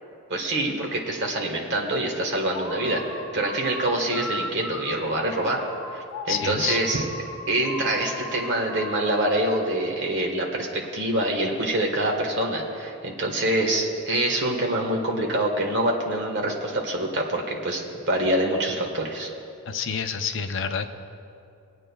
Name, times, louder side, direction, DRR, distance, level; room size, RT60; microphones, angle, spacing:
voice 1, 0.3-5.6 5.9-7.0 7.5-19.3, right 1 dB, 55° right, 1 dB, 1.4 m, -25 dB
sound 1, 2.5-9.7, left 2 dB, 75° left, 1.0 m, -37 dB
voice 2, 6.3-6.8 19.7-20.9, left 6 dB, 60° left, 8 dB, 0.5 m, -28 dB
24.0 x 8.8 x 2.3 m, 2.6 s
head